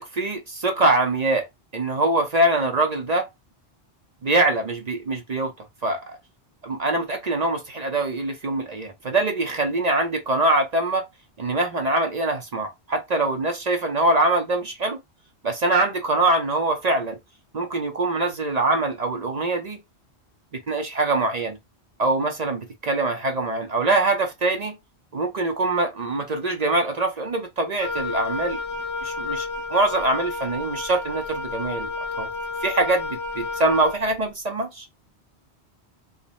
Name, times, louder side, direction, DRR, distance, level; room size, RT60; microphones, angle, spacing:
voice 1, 0.0-1.5 1.7-3.3 4.2-5.5 5.8-6.0 6.6-11.0 11.4-15.0 15.4-17.2 17.5-19.8 20.7-21.6 22.0-24.8 25.1-28.6 29.0-31.9 32.2-32.3 32.6-34.9, right 2 dB, 45° right, 0.6 m, -23 dB
Wind instrument woodwind instrument, 27.8-34.0, left 3 dB, 85° left, 1.0 m, -31 dB
3.2 x 2.1 x 4.0 m
omnidirectional pair, 1.1 m